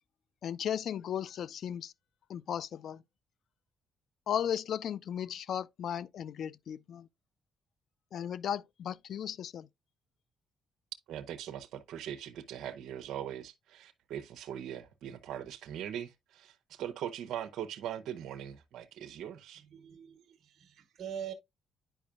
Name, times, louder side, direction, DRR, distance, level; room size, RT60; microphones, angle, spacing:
voice 1, 0.4-1.9 2.3-3.0 4.3-7.1 8.1-9.7, left 9 dB, 65° left, 0.4 m, -36 dB
voice 2, 11.1-19.6, right 10 dB, 80° right, 0.8 m, -41 dB
voice 3, 19.6-21.3, right 8 dB, 60° right, 1.3 m, -44 dB
10.0 x 5.1 x 2.4 m
cardioid pair, 90°, 0 cm